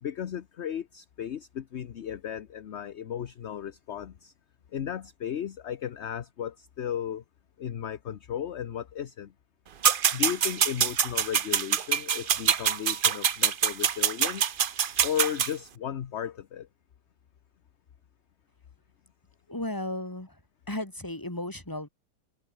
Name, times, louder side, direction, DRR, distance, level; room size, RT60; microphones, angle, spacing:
voice 1, 0.0-4.3 4.7-7.2 7.6-9.3 10.1-14.5 15.0-16.7, left 9 dB, 50° left, 1.0 m, -35 dB
sound 1, 9.8-15.5, right 8 dB, 45° right, 0.7 m, -25 dB
voice 2, 19.5-20.4 20.7-21.9, left 1 dB, 15° left, 3.0 m, -34 dB
omnidirectional pair, 1.6 m